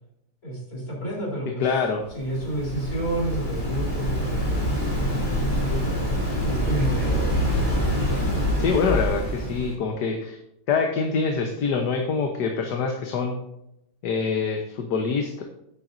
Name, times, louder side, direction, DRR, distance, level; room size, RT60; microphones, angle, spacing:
voice 1, 0.4-1.7 2.1-5.0 5.4-7.5, right 1 dB, 55° left, -4 dB, 4.3 m, -31 dB
voice 2, 1.6-2.0 8.6-10.4 10.7-13.4 14.0-15.4, left 5 dB, 75° left, 3 dB, 1.6 m, -25 dB
Waves surf, 2.1-9.7, equal, 25° left, 2.9 m, -25 dB
11.5 x 9.1 x 2.6 m, 0.80 s
omnidirectional pair, 1.8 m